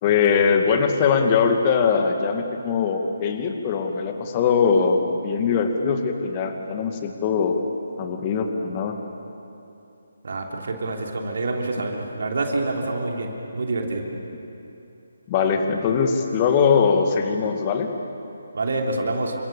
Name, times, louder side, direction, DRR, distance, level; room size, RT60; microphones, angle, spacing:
voice 1, 0.0-7.6 8.0-9.0 15.3-17.9, left 6 dB, 25° left, 5 dB, 2.3 m, -21 dB
voice 2, 10.2-14.0 18.5-19.3, right 2 dB, 55° right, 1 dB, 3.4 m, -27 dB
29.5 x 26.0 x 7.2 m, 2.8 s
figure-of-eight pair, 145°, 0 cm